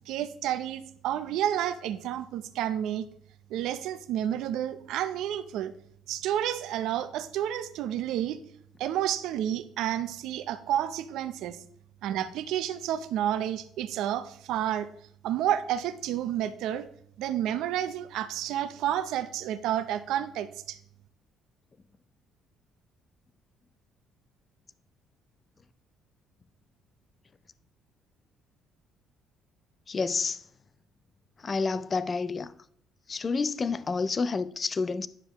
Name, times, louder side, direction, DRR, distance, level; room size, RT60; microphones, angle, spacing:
voice 1, 0.1-3.0 3.5-5.7 6.1-8.4 8.8-11.6 12.0-14.9 15.2-16.9 17.2-20.8, right 11 dB, 70° right, 0.6 m, -30 dB
voice 2, 29.9-30.4 31.4-32.5 33.1-35.1, left 4 dB, 20° left, 0.3 m, -29 dB
9.8 x 6.9 x 3.0 m
cardioid pair, 180°, 0 cm